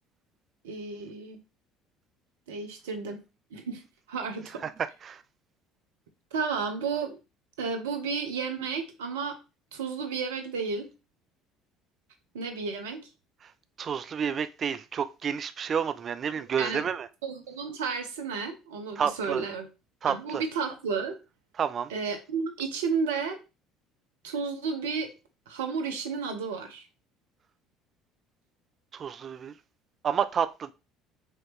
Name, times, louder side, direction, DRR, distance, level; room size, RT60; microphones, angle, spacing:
voice 1, 0.6-1.4 2.5-3.2 3.5-3.8 4.1-4.6 6.3-7.2 7.6-9.4 9.7-10.9 12.3-13.0 16.4-16.8 17.2-19.7 20.1-21.1 21.9-23.4 24.2-25.1 25.5-26.8, right 5 dB, 75° right, 0.8 m, -32 dB
voice 2, 13.8-17.1 19.0-19.4 20.0-20.4 21.6-21.9 28.9-29.5 30.0-30.7, right 7 dB, 40° right, 0.3 m, -30 dB
4.7 x 2.9 x 3.1 m
figure-of-eight pair, 60°, 0 cm